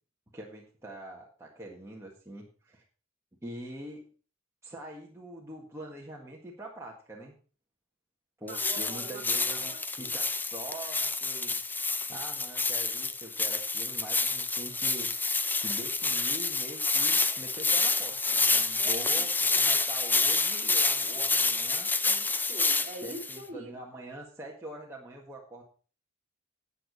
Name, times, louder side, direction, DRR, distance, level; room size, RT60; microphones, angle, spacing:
voice 1, 0.3-2.8 3.4-4.1 4.6-7.4 8.4-11.6 12.1-15.1 15.6-21.9 23.0-25.6, right 1 dB, 15° right, -3 dB, 1.6 m, -44 dB
sound 1, 8.5-23.4, left 3 dB, 10° left, 0.5 m, -28 dB
voice 2, 8.5-10.1 18.8-19.2 19.5-19.6 22.0-23.7, right 1 dB, 35° right, 4 dB, 2.7 m, -44 dB
11.5 x 8.5 x 4.1 m, 0.38 s
head